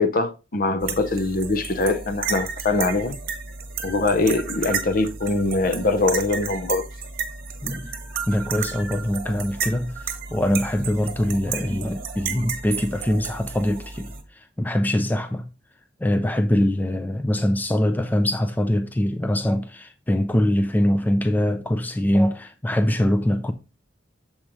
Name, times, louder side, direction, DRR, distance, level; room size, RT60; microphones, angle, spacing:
voice 1, 0.0-3.2 3.8-6.9 7.6-7.8, left 3 dB, 50° left, 0.7 m, -23 dB
sound 1, 0.8-14.2, right 6 dB, 50° right, 1.1 m, -32 dB
voice 2, 7.6-7.9 8.3-15.5 16.0-23.5, left 1 dB, 10° left, 0.4 m, -23 dB
7.2 x 5.0 x 3.0 m
head